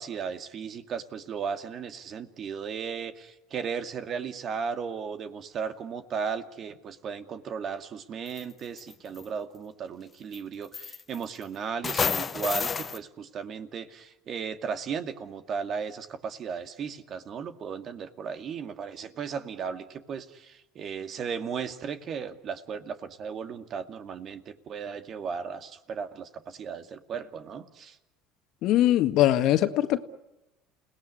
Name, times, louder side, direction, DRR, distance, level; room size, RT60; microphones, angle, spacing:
voice 1, 0.0-28.0, right 6 dB, 45° right, 8 dB, 2.4 m, -36 dB
sound 1, 8.3-8.4 8.8-9.2 10.3-10.4 10.7-11.4 11.8-13.0, left 5 dB, 30° left, 1.3 m, -29 dB
voice 2, 28.6-30.0, left 13 dB, 60° left, 9 dB, 1.8 m, -22 dB
29.0 x 18.5 x 9.7 m, 1.0 s
supercardioid pair, 90°, 0 cm